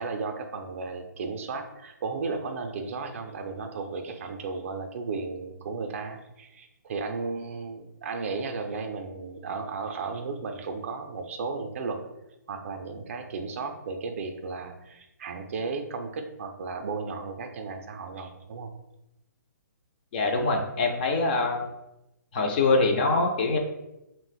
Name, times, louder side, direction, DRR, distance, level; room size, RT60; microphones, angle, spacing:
voice 1, 0.0-12.0 12.5-18.7, right 4 dB, 45° right, 5 dB, 0.4 m, -34 dB
voice 2, 20.1-21.7 22.3-23.6, left 3 dB, 30° left, 3 dB, 0.3 m, -24 dB
2.4 x 2.0 x 3.9 m, 0.90 s
hypercardioid pair, 155°, 10 cm